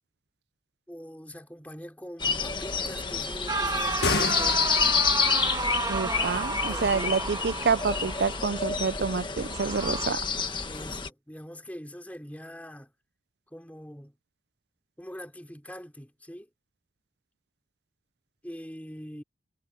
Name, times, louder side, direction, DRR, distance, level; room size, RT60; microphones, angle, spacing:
voice 1, 0.9-5.1 6.7-7.2 10.6-12.9 13.5-14.2 15.0-16.5 18.4-19.2, equal, 10° left, 4.6 m, -43 dB
sound 1, 2.2-11.1, left 5 dB, 25° left, 1.6 m, -29 dB
sound 2, 3.5-8.6 9.5-10.1, right 3 dB, 20° right, 1.5 m, -32 dB
sound 3, 3.9-5.2, left 4 dB, 75° left, 1.5 m, -30 dB
voice 2, 5.9-10.2, right 5 dB, 75° right, 0.5 m, -28 dB
head